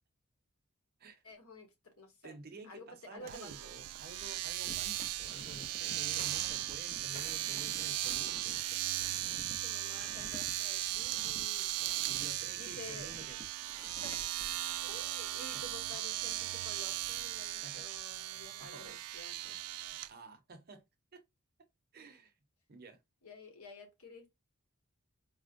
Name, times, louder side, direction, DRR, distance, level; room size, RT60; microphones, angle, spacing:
voice 1, 1.2-2.4 2.6-3.7 9.6-11.7 12.6-13.1 14.0-14.3 14.8-19.6 23.2-24.4, left 2 dB, 75° left, 1.3 m, -51 dB
voice 2, 2.2-8.8 12.0-13.4 15.5-15.6 17.6-17.9 18.6-19.0 19.7-20.9 21.1-21.2 21.9-22.3 22.7-23.0, right 3 dB, 45° right, 0.6 m, -51 dB
Domestic sounds home sounds, 3.3-20.1, right 15 dB, 85° right, 0.3 m, -37 dB
sound 1, 4.7-15.1, left 2 dB, 35° left, 0.7 m, -53 dB
4.3 x 2.1 x 2.5 m
head